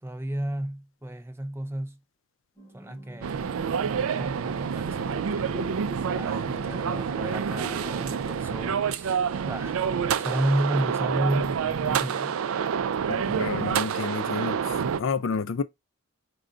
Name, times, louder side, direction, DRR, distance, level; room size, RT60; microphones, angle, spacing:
voice 1, 0.0-2.0 2.7-5.8 6.1-9.9 10.2-12.4, right 1 dB, 10° right, 0.4 m, -32 dB
sound 1, 2.6-12.4, left 3 dB, 20° left, 0.9 m, -46 dB
sound 2, 3.2-15.0, right 7 dB, 80° right, 0.4 m, -28 dB
voice 2, 13.1-15.6, left 5 dB, 65° left, 0.4 m, -30 dB
4.9 x 2.3 x 3.8 m
head